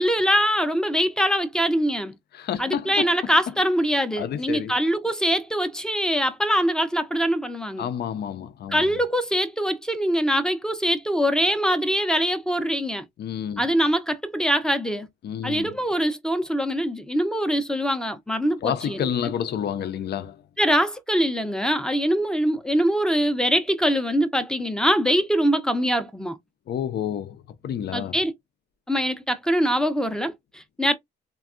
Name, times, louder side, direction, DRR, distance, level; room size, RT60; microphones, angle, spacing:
voice 1, 0.0-2.1 2.6-7.9 8.7-13.1 13.6-15.1 15.4-19.1 20.6-26.4 27.9-28.3 28.9-30.9, equal, 5° left, 0.5 m, -23 dB
voice 2, 2.3-3.3 4.2-4.8 7.8-8.9 13.2-13.7 15.2-15.8 18.6-20.4 26.7-28.2, left 9 dB, 55° left, 0.5 m, -29 dB
3.4 x 2.2 x 2.4 m
cardioid pair, 90°, 20 cm